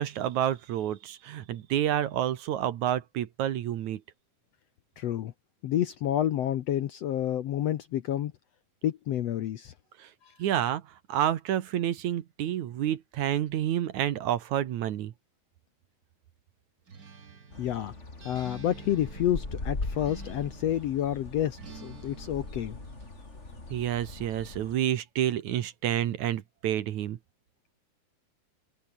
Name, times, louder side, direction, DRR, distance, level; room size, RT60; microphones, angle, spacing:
voice 1, 0.0-4.0 10.0-10.1 10.4-10.8 11.1-15.1 23.7-27.2, right 11 dB, 65° right, 2.4 m, -29 dB
voice 2, 5.0-5.3 5.6-8.3 8.8-9.7 10.2-10.3 17.6-17.9 18.2-22.8, left 11 dB, 65° left, 1.7 m, -29 dB
Acoustic guitar, 16.9-21.0 21.6-23.1, right 5 dB, 35° right, 1.9 m, -49 dB
sound 1, 17.5-24.8, left 3 dB, 20° left, 3.6 m, -40 dB
omnidirectional pair, 3.9 m